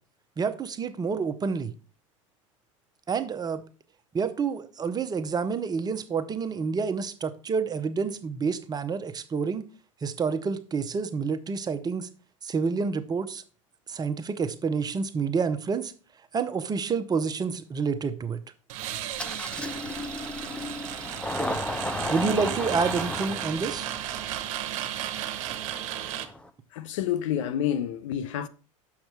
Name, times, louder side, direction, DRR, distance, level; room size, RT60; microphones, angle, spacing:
voice 1, 0.4-1.7 3.1-3.6 4.1-9.7 10.0-12.1 12.4-13.4 13.9-15.9 16.3-18.4 22.1-23.9, right 5 dB, 25° right, 0.7 m, -28 dB
sound 1, 18.7-26.3, right 12 dB, 60° right, 1.0 m, -34 dB
Engine starting, 19.2-26.5, left 1 dB, 5° left, 0.7 m, -35 dB
voice 2, 26.7-28.5, left 10 dB, 70° left, 0.6 m, -28 dB
6.5 x 5.9 x 4.5 m
hypercardioid pair, 85°, 17 cm